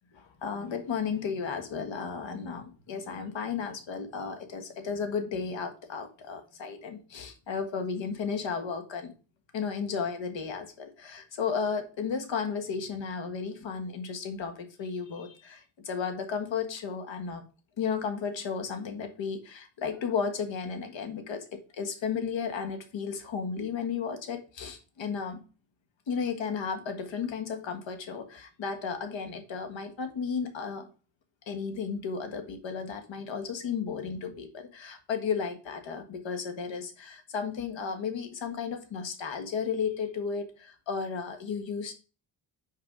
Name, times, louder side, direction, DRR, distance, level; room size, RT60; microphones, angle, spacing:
voice 1, 0.1-9.1 9.5-17.4 17.8-21.4 21.7-25.4 26.1-30.9 31.5-41.9, left 6 dB, 75° left, 6 dB, 1.6 m, -34 dB
6.0 x 4.8 x 4.9 m, 0.35 s
cardioid pair, 120°, 46 cm